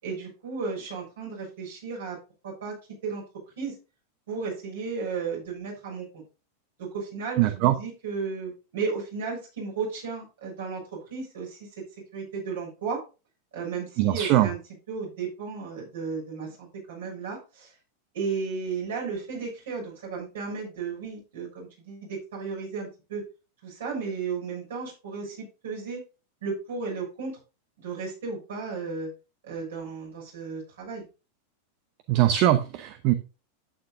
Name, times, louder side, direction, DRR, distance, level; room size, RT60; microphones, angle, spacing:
voice 1, 0.0-2.2 2.4-2.8 3.0-3.2 3.6-3.8 4.3-6.2 6.8-11.7 12.1-13.0 13.5-14.6 14.9-17.7 18.1-23.2 23.6-26.0 26.4-27.4 27.8-29.1 29.4-31.0, right 5 dB, 60° right, -1 dB, 6.5 m, -34 dB
voice 2, 7.4-7.7 14.0-14.5 32.1-33.1, right 14 dB, 45° right, 10 dB, 0.8 m, -21 dB
11.5 x 9.0 x 2.6 m, 0.31 s
figure-of-eight pair, 90°, 0 cm